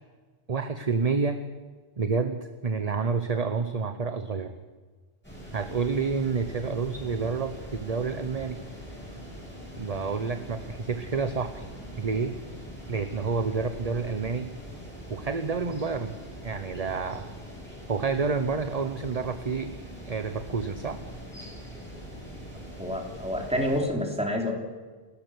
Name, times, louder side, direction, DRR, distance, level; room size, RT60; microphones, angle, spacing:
voice 1, 0.5-1.5 2.0-4.5 5.5-8.6 9.8-11.7 12.0-12.4 12.9-14.5 15.1-16.2 16.4-17.3 17.9-19.7 20.0-21.0, right 4 dB, 40° right, 9 dB, 1.0 m, -29 dB
sound 1, 5.2-23.8, equal, 10° left, 7.8 m, -42 dB
voice 2, 22.8-24.5, equal, 5° right, 1 dB, 3.2 m, -28 dB
30.0 x 13.5 x 6.4 m, 1.4 s
omnidirectional pair, 1.1 m